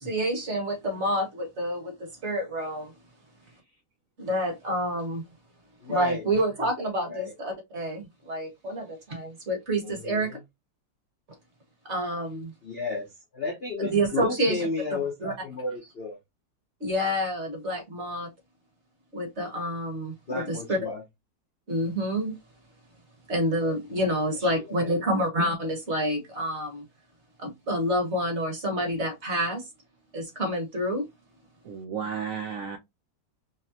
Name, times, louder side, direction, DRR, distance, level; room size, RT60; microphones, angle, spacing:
voice 1, 0.0-2.9 4.2-5.2 5.9-10.3 11.8-12.5 13.9-14.7 15.2-15.3 16.8-18.3 19.1-20.8 21.7-22.4 23.3-26.8 27.4-29.6 30.1-31.0, equal, 40° right, 1.5 m, -28 dB
voice 2, 5.8-6.2 7.1-7.3 9.8-10.4 12.6-13.1 13.3-16.2 20.3-21.0 23.9-24.0 24.4-24.9, left 3 dB, 50° left, 0.7 m, -33 dB
voice 3, 31.6-32.8, right 7 dB, 65° right, 0.9 m, -33 dB
4.1 x 3.2 x 2.7 m
omnidirectional pair, 2.0 m